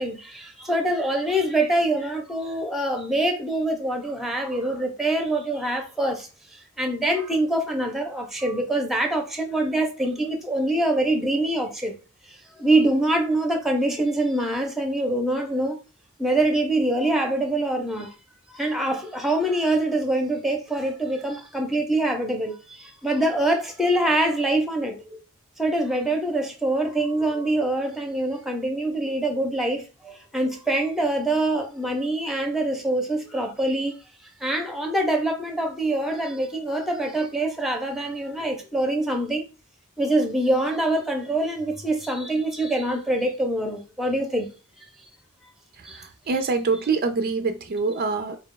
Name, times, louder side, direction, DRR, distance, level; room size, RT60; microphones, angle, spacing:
voice 1, 0.0-11.9 12.3-15.8 16.2-18.1 18.5-25.2 25.6-34.0 34.4-39.4 40.0-44.5 45.8-46.0, right 1 dB, ahead, 0.6 m, -25 dB
voice 2, 45.8-48.4, right 4 dB, 40° right, 0.4 m, -25 dB
4.0 x 2.3 x 3.7 m
head